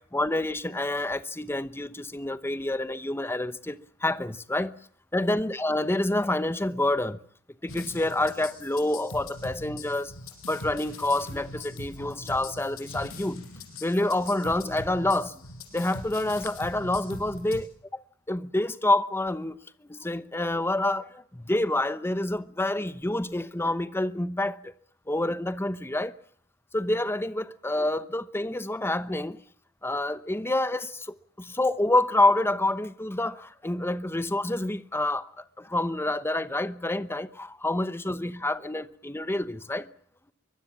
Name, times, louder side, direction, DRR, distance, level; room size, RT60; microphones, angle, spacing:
voice 1, 0.1-3.7 4.0-4.7 5.1-7.2 7.6-10.1 10.5-13.4 13.8-15.3 15.7-17.7 18.3-19.5 19.9-21.0 21.5-24.6 25.1-26.1 26.7-29.4 29.8-30.9 31.6-33.3 33.6-35.2 35.7-39.8, left 1 dB, 10° left, 0.9 m, -27 dB
sound 1, 7.7-17.6, left 2 dB, 65° left, 6.0 m, -41 dB
23.5 x 22.0 x 7.4 m
head